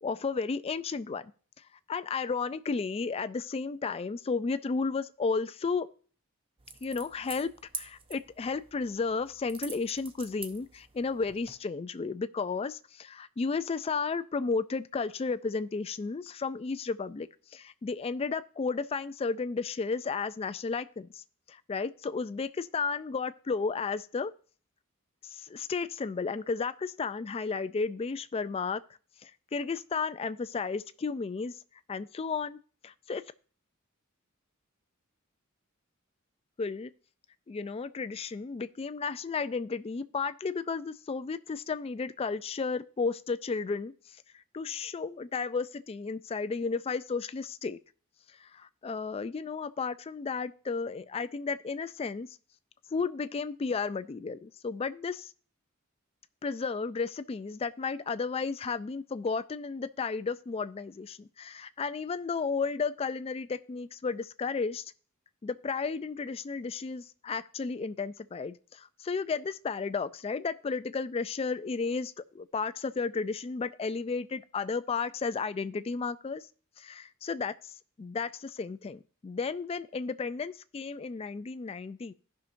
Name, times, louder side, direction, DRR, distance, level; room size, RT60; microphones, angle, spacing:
voice 1, 0.0-1.3 1.9-5.9 6.8-24.3 25.2-28.8 29.2-31.6 31.9-33.2 36.6-36.9 37.5-47.8 48.4-52.4 52.9-55.3 56.4-64.9 65.4-76.4 76.8-82.1, left 4 dB, 25° left, 13 dB, 0.3 m, -33 dB
sound 1, 6.6-11.6, right 5 dB, 25° right, 0.6 m, -46 dB
16.5 x 5.7 x 2.6 m, 0.41 s
head